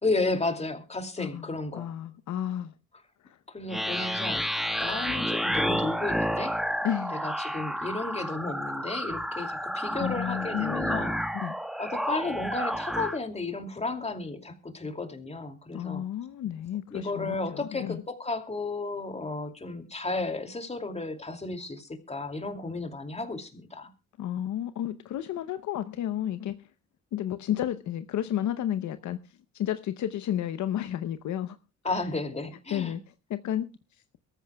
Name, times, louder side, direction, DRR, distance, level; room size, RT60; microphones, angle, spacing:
voice 1, 0.0-1.9 3.5-4.4 4.8-6.6 7.1-11.2 11.8-16.0 16.9-23.9 31.8-33.0, left 3 dB, 20° left, 6 dB, 2.5 m, -33 dB
voice 2, 1.2-2.7 3.2-3.4 6.8-7.2 10.0-11.1 11.3-11.5 15.7-18.0 24.2-26.7 27.1-29.2 29.5-31.6 31.8-32.0 32.7-33.0 33.3-33.7, left 11 dB, 70° left, 12 dB, 0.8 m, -32 dB
sound 1, 3.7-13.2, equal, ahead, 1.2 m, -30 dB
23.0 x 14.0 x 2.3 m, 0.29 s
cardioid pair, 90°, 30 cm